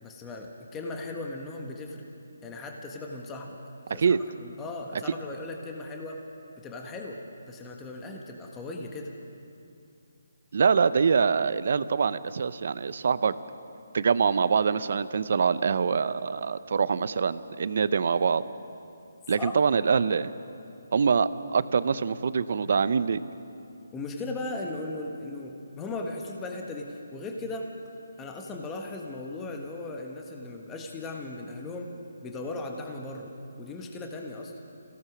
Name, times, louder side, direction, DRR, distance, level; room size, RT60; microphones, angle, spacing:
voice 1, 0.0-2.0 2.4-3.5 3.9-6.2 6.6-9.1 19.4-19.6 23.9-27.7 28.2-31.9 32.2-34.5, left 2 dB, 15° left, 1 dB, 1.5 m, -37 dB
voice 2, 10.5-13.3 13.9-18.4 19.3-20.3 20.9-23.2, right 5 dB, 55° right, 15 dB, 0.7 m, -24 dB
26.0 x 17.0 x 6.2 m, 2.6 s
hypercardioid pair, 160°, 0 cm